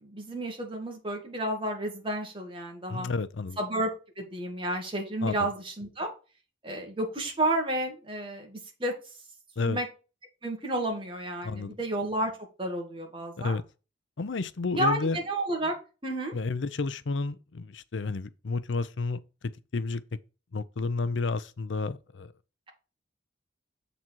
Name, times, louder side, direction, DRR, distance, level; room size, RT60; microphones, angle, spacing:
voice 1, 0.0-3.1 3.6-3.9 4.2-6.1 6.6-8.9 9.6-9.9 10.4-12.3 12.6-13.6 14.8-15.7 16.0-16.4, right 1 dB, 30° right, 2.0 m, -31 dB
voice 2, 2.9-3.6 5.2-5.5 9.6-9.8 11.4-11.8 13.4-13.6 14.2-15.2 16.3-19.2 19.7-20.0 20.5-22.3, left 3 dB, 80° left, 0.6 m, -31 dB
7.4 x 4.1 x 4.5 m
head